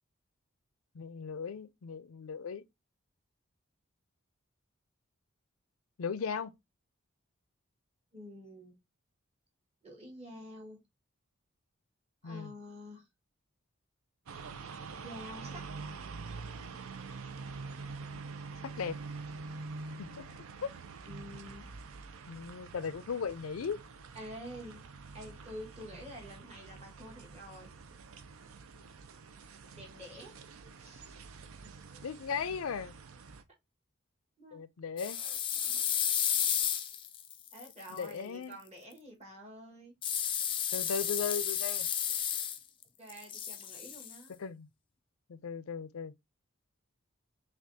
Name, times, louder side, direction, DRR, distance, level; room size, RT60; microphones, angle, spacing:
voice 1, 0.9-2.6 6.0-6.5 12.2-12.5 18.1-18.2 18.6-19.0 20.0-20.3 20.6-20.7 22.3-23.8 31.6-31.7 32.0-32.9 34.5-35.2 37.9-38.6 40.7-41.9 44.4-44.7 45.3-46.1, left 6 dB, 85° left, 0.5 m, -37 dB
voice 2, 8.1-8.8 9.8-10.8 12.2-13.1 15.0-15.6 21.1-21.7 24.1-24.9 25.1-27.7 29.8-30.3 30.8-31.2 34.4-34.6 37.5-39.9 43.0-44.3, equal, 30° right, 1.5 m, -48 dB
sound 1, 14.3-33.4, right 4 dB, 85° right, 0.5 m, -46 dB
sound 2, 35.0-38.0 40.0-42.8 43.1-44.2, left 9 dB, 25° left, 0.3 m, -32 dB
5.9 x 2.4 x 2.6 m
head